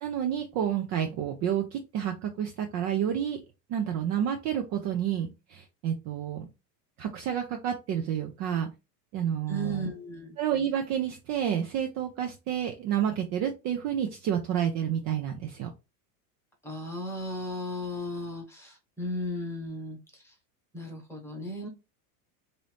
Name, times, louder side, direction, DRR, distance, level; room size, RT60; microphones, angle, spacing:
voice 1, 0.0-3.4 3.7-6.5 7.0-8.7 9.1-9.9 10.4-15.7, right 9 dB, 40° right, 4 dB, 0.5 m, -30 dB
voice 2, 9.5-10.4 16.6-20.3 20.7-21.7, equal, 5° left, 0 dB, 1.1 m, -35 dB
3.0 x 2.7 x 3.2 m, 0.27 s
supercardioid pair, 135°, 46 cm